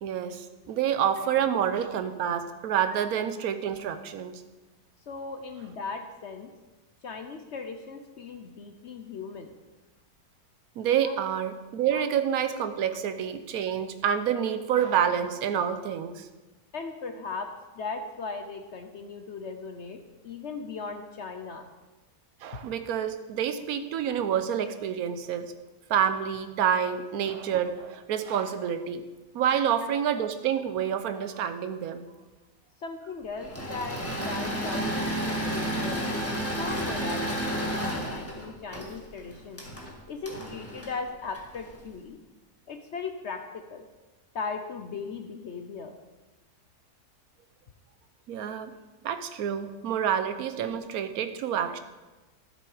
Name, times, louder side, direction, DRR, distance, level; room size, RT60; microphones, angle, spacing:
voice 1, 0.0-4.4 10.8-16.3 22.4-25.5 25.9-29.1 29.3-32.1 48.3-48.7 49.0-51.8, right 8 dB, 65° right, 10 dB, 1.1 m, -28 dB
voice 2, 5.1-6.5 7.0-9.6 11.0-11.2 11.9-12.0 16.7-21.7 29.5-29.7 32.8-39.6 40.1-42.2 42.7-43.8 44.3-46.0, left 4 dB, 55° left, 6 dB, 0.8 m, -38 dB
Engine / Mechanisms, 33.4-41.8, right 1 dB, 10° left, 1.5 m, -32 dB
12.0 x 7.0 x 4.9 m, 1.2 s
omnidirectional pair, 1.8 m